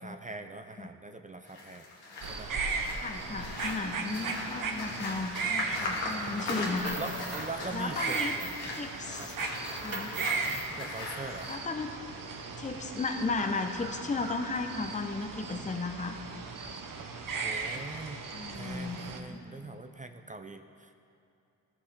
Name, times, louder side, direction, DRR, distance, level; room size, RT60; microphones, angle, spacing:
voice 1, 0.0-1.9 2.3-2.5 6.9-8.5 9.2-9.3 10.8-11.5 17.4-18.3 18.5-21.0, right 3 dB, 20° right, 7 dB, 0.4 m, -42 dB
sound 1, 1.5-11.6, left 2 dB, 75° left, 1.6 m, -39 dB
sound 2, 2.2-19.2, right 4 dB, 55° right, 0.9 m, -37 dB
voice 2, 3.0-7.0 7.7-8.4 8.7-9.3 9.8-10.2 11.5-11.9 12.6-16.2 18.3-19.8, left 3 dB, 20° left, 5 dB, 0.7 m, -35 dB
sound 3, 6.6-7.5 7.9-8.8 9.2-10.7, right 3 dB, 40° right, 2.0 m, -42 dB
13.5 x 5.9 x 3.3 m, 2.7 s
supercardioid pair, 50°, 39 cm